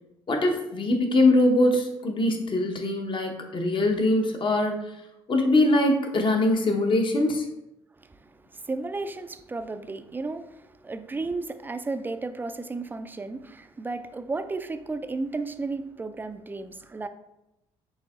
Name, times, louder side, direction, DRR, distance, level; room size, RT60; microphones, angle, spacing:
voice 1, 0.3-5.0 5.3-7.5, left 2 dB, 40° left, 0.9 m, -22 dB
voice 2, 8.0-17.1, right 3 dB, 15° right, 0.3 m, -34 dB
7.3 x 2.7 x 2.4 m
hypercardioid pair, 60°, 13 cm